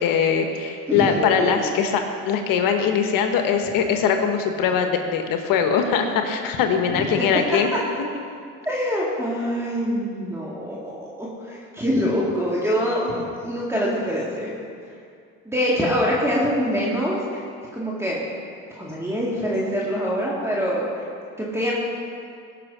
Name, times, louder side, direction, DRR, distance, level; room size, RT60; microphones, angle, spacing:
voice 1, 0.0-7.7, left 6 dB, 65° left, 5 dB, 1.2 m, -21 dB
voice 2, 0.9-1.6 6.9-7.2 8.6-14.5 15.5-17.4 17.7-18.2 18.7-21.0 21.4-21.7, equal, 5° right, -6 dB, 2.1 m, -25 dB
18.0 x 6.0 x 4.9 m, 2.3 s
supercardioid pair, 85°, 36 cm